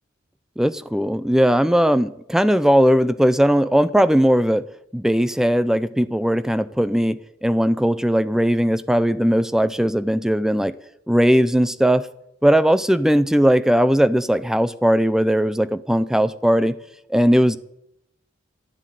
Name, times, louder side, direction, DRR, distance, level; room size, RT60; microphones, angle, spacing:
voice 1, 0.6-4.6 4.9-10.7 11.1-12.1 12.4-16.7 17.1-17.6, equal, 5° right, 14 dB, 0.5 m, -18 dB
12.0 x 7.5 x 9.3 m, 0.78 s
head